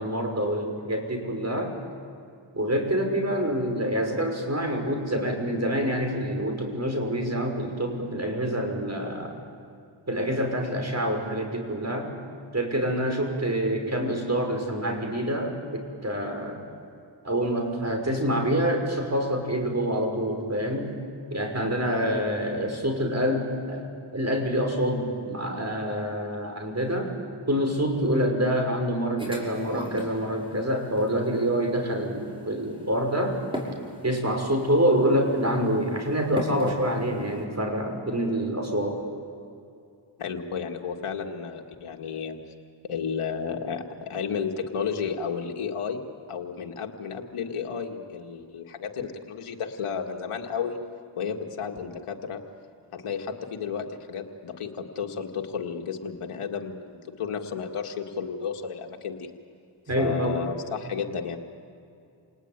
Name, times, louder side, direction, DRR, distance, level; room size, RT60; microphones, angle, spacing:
voice 1, 0.0-1.7 2.5-9.4 10.1-12.1 12.5-16.6 17.2-21.0 21.3-27.1 27.5-33.4 34.0-39.0 59.9-60.4, equal, 30° right, 3 dB, 5.8 m, -26 dB
sound 1, 29.2-37.4, equal, 10° right, 6.0 m, -40 dB
voice 2, 40.2-42.4 42.9-46.0 46.3-50.8 51.2-52.4 52.9-59.3 60.0-61.4, left 6 dB, 85° left, 3 dB, 1.8 m, -32 dB
28.0 x 19.5 x 8.9 m, 2.5 s
cardioid pair, 45°, 50 cm